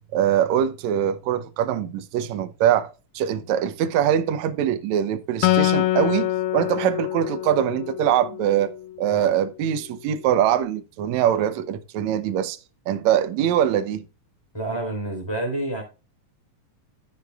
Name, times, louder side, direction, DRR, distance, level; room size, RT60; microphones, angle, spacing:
voice 1, 0.1-2.9 3.2-8.7 9.0-12.6 12.9-14.1, right 10 dB, 70° right, 1.8 m, -23 dB
Acoustic guitar, 5.4-8.9, left 14 dB, 80° left, 1.9 m, -25 dB
voice 2, 14.5-15.8, right 1 dB, 5° left, 3.6 m, -28 dB
14.5 x 6.6 x 2.4 m
omnidirectional pair, 4.0 m